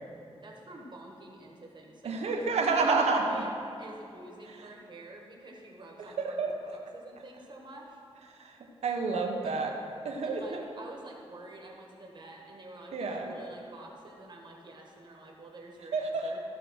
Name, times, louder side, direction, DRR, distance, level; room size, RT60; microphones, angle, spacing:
voice 1, 0.4-3.5 3.8-8.0 9.4-9.6 10.2-16.4, right 2 dB, 45° right, 0 dB, 1.5 m, -48 dB
voice 2, 2.0-3.4 6.2-6.5 8.3-9.7 10.0-10.6 12.9-13.3 15.9-16.3, right 4 dB, 80° right, 2 dB, 1.2 m, -29 dB
14.0 x 4.7 x 6.4 m, 2.5 s
wide cardioid pair, 125°, 11 cm